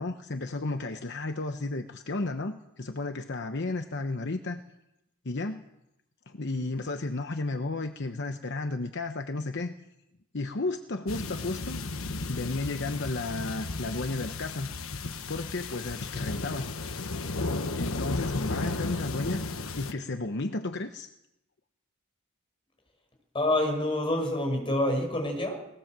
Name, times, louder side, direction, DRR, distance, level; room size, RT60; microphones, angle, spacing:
voice 1, 0.0-4.6 5.2-5.6 6.3-9.7 10.3-11.8 12.3-14.7 15.3-16.7 17.8-19.4 19.8-21.1, left 2 dB, 55° left, 7 dB, 0.9 m, -33 dB
sound 1, 11.1-19.9, left 3 dB, 80° left, 1.3 m, -34 dB
voice 2, 23.3-25.6, left 1 dB, 25° left, 3 dB, 6.0 m, -27 dB
19.5 x 19.0 x 7.5 m, 0.87 s
head